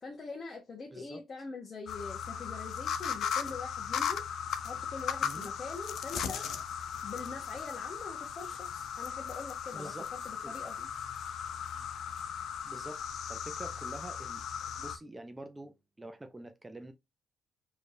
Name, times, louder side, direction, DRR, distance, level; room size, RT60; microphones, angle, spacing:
voice 1, 0.0-4.3 4.6-6.5 7.0-10.9, left 4 dB, 45° left, 1.2 m, -44 dB
sound 1, 1.9-15.0, left 8 dB, 70° left, 0.6 m, -37 dB
voice 2, 9.7-10.1 10.4-10.5 12.6-13.0 13.3-14.4 14.8-16.9, right 2 dB, 15° right, 0.7 m, -46 dB
4.6 x 3.3 x 2.6 m
cardioid pair, 90°, 0 cm